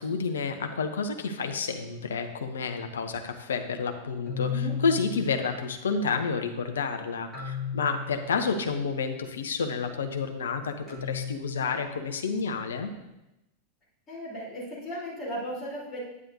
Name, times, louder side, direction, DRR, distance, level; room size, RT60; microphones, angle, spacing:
voice 1, 0.0-12.9, left 5 dB, 65° left, 6 dB, 0.8 m, -30 dB
sound 1, 4.3-6.2 7.3-9.0 10.9-12.4, left 6 dB, 10° right, 3.2 m, -36 dB
voice 2, 14.1-16.0, equal, 20° left, -7 dB, 3.4 m, -36 dB
9.6 x 9.5 x 2.7 m, 0.94 s
figure-of-eight pair, 90°, 0 cm